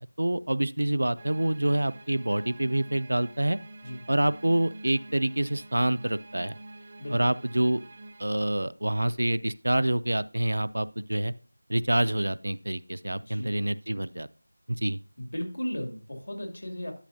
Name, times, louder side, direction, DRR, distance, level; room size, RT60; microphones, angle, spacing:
voice 1, 0.2-3.6 4.1-6.6 7.1-7.8 8.2-11.3 11.7-14.3 14.7-15.0, right 1 dB, 85° right, 16 dB, 0.4 m, -27 dB
sound 1, 1.2-8.2, right 2 dB, 20° right, 0.5 m, -47 dB
voice 2, 7.0-7.4 13.2-13.5 15.2-16.9, equal, 75° left, 3 dB, 2.3 m, -36 dB
11.5 x 6.1 x 2.6 m, 0.39 s
figure-of-eight pair, 180°, 0 cm